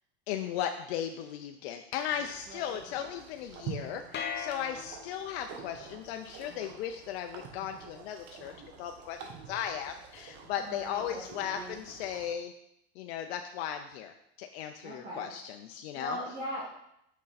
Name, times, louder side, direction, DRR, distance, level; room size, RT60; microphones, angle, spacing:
voice 1, 0.3-8.5 8.8-9.2 9.5-12.5 13.0-16.2, left 9 dB, 80° left, 5 dB, 0.6 m, -36 dB
sound 1, 2.1-12.3, right 6 dB, 50° right, 1.3 m, -48 dB
voice 2, 2.5-2.8 10.6-11.8 14.8-15.3 15.9-16.7, equal, 30° right, -7 dB, 1.8 m, -40 dB
sound 2, 4.1-5.5, left 6 dB, 35° left, 0.9 m, -39 dB
6.2 x 5.4 x 4.1 m, 0.77 s
supercardioid pair, 130°, 31 cm